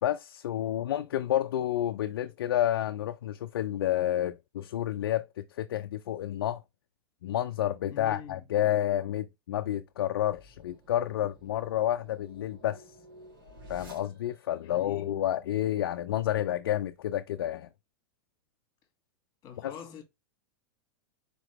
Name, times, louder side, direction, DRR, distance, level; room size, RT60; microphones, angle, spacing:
voice 1, 0.0-6.6 7.2-12.8 13.7-17.7 19.6-19.7, left 12 dB, 90° left, 0.4 m, -30 dB
voice 2, 7.9-8.4 14.6-15.2 19.4-20.0, left 8 dB, 35° left, 1.5 m, -44 dB
sound 1, 10.0-14.6, right 1 dB, 80° right, 2.3 m, -53 dB
4.2 x 3.0 x 2.9 m
supercardioid pair, 135°, 12 cm